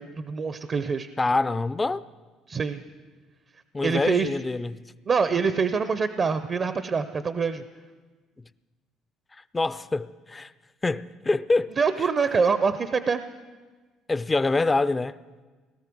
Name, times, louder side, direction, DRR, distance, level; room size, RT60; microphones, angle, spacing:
voice 1, 0.0-1.1 2.5-2.8 3.8-4.3 5.1-7.6 11.8-13.2, right 5 dB, 35° right, 0.6 m, -25 dB
voice 2, 1.2-2.0 3.7-4.8 9.3-10.5 10.8-11.7 12.0-12.1 14.1-15.2, left 3 dB, 20° left, 0.4 m, -25 dB
18.0 x 13.0 x 6.1 m
cardioid pair, 115°, 0 cm